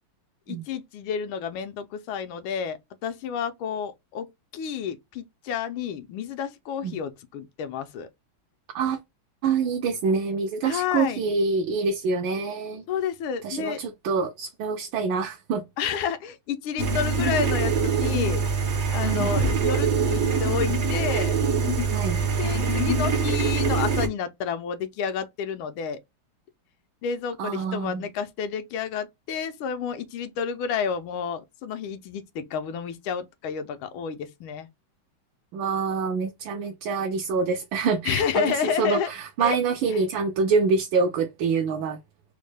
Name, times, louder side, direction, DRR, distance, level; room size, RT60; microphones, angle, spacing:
voice 1, 0.5-8.1 10.6-11.2 12.9-13.8 15.8-18.4 18.9-21.3 22.4-26.0 27.0-34.7 38.0-39.1 39.4-39.6 39.9-40.0, left 7 dB, 85° left, 1.4 m, -30 dB
voice 2, 9.4-12.8 13.4-15.6 19.0-19.3 21.9-22.2 27.4-28.1 35.5-42.0, right 4 dB, 80° right, 1.3 m, -26 dB
sound 1, 16.8-24.1, right 4 dB, 60° right, 0.7 m, -24 dB
4.2 x 2.1 x 3.2 m
omnidirectional pair, 2.2 m